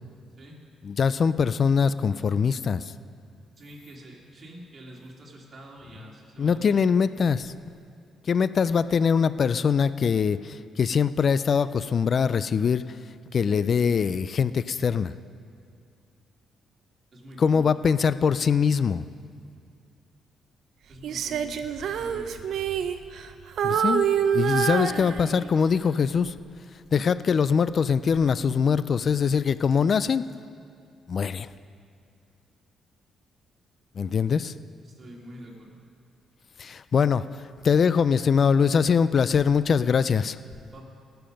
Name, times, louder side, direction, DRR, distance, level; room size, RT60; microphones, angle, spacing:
voice 1, 0.8-2.9 6.4-7.5 8.3-12.8 13.3-15.1 17.4-19.0 23.6-24.1 24.3-26.3 26.9-30.3 31.1-31.5 34.0-34.5 36.6-37.2 37.6-40.4, left 6 dB, 50° left, 15 dB, 0.3 m, -23 dB
voice 2, 3.6-6.8 17.1-17.8 20.9-21.7 22.0-22.5 34.8-35.8 40.7-40.8, right 1 dB, 45° right, -2 dB, 2.6 m, -46 dB
Female singing, 21.0-23.3 23.6-25.6 26.2-26.4, right 8 dB, 70° right, 0.6 m, -26 dB
19.0 x 6.9 x 5.3 m, 2.4 s
cardioid pair, 90°, 0 cm